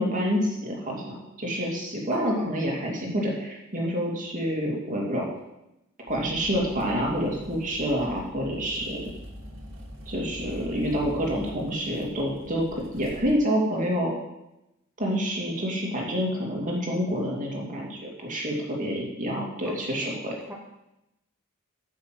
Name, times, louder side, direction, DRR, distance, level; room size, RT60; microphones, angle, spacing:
voice 1, 0.0-5.3 6.1-9.1 10.1-14.1 15.0-20.3, equal, 40° right, -2 dB, 2.7 m, -28 dB
voice 2, 2.1-2.6 19.6-20.1 20.5-20.6, right 1 dB, 10° right, -2 dB, 1.1 m, -38 dB
sound 1, 6.1-13.3, equal, 60° right, 2.3 m, -43 dB
9.2 x 6.2 x 7.8 m, 0.90 s
head